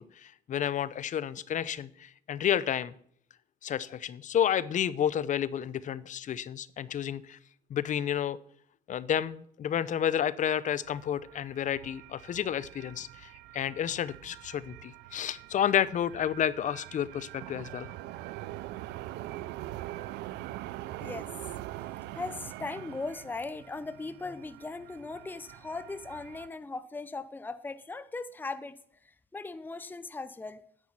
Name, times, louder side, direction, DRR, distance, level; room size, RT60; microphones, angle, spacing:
voice 1, 0.0-2.9 3.6-7.4 7.7-8.4 8.9-17.9, left 9 dB, 50° left, 18 dB, 0.8 m, -31 dB
sound 1, 10.6-26.5, right 15 dB, 85° right, 0.6 m, -44 dB
voice 2, 21.0-21.3 21.8-21.9 22.1-28.7 29.0-30.6, left 3 dB, 10° left, 12 dB, 0.8 m, -39 dB
10.0 x 8.5 x 9.9 m, 0.65 s
cardioid pair, 110°, 17 cm